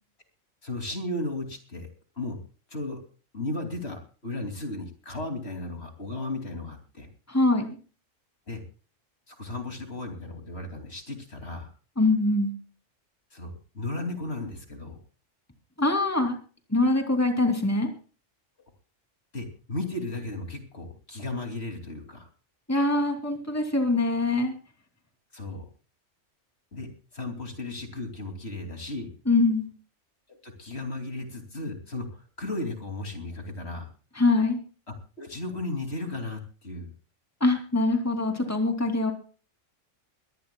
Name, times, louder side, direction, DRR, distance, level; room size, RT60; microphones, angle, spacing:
voice 1, 0.6-1.9 2.2-2.4 2.7-3.0 3.3-7.1 8.5-8.6 9.3-11.7 13.3-15.0 19.3-22.3 25.3-25.6 26.7-29.1 30.4-33.9 34.9-36.9, left 2 dB, 55° left, 4 dB, 3.1 m, -35 dB
voice 2, 7.3-7.8 12.0-12.5 15.8-16.4 16.7-17.9 22.7-24.5 29.3-29.7 34.2-34.6 37.4-39.1, left 2 dB, 10° left, 4 dB, 2.9 m, -23 dB
23.0 x 17.0 x 2.3 m, 0.37 s
omnidirectional pair, 1.3 m